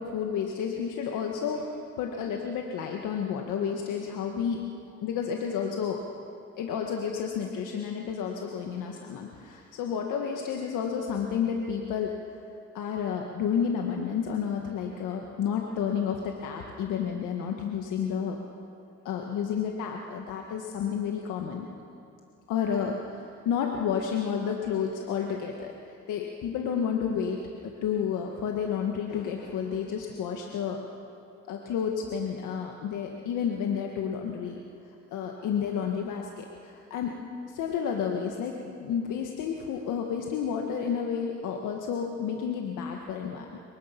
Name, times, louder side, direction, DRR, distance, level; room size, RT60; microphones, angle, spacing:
voice 1, 0.0-4.7 5.0-6.0 6.6-12.4 12.7-18.4 19.0-21.7 22.5-30.8 31.5-34.6 35.1-37.1 37.5-43.6, left 7 dB, 85° left, 2 dB, 1.7 m, -31 dB
27.0 x 23.5 x 6.0 m, 2.5 s
cardioid pair, 90°, 30 cm